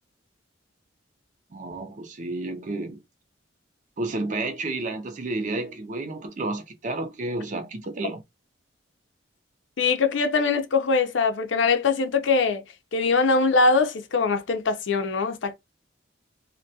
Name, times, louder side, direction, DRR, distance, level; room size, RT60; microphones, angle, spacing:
voice 1, 1.5-3.0 4.0-8.2, right 2 dB, 40° right, 0.5 m, -31 dB
voice 2, 9.8-12.6 12.9-15.5, left 4 dB, 75° left, 0.5 m, -22 dB
2.3 x 2.2 x 2.6 m
head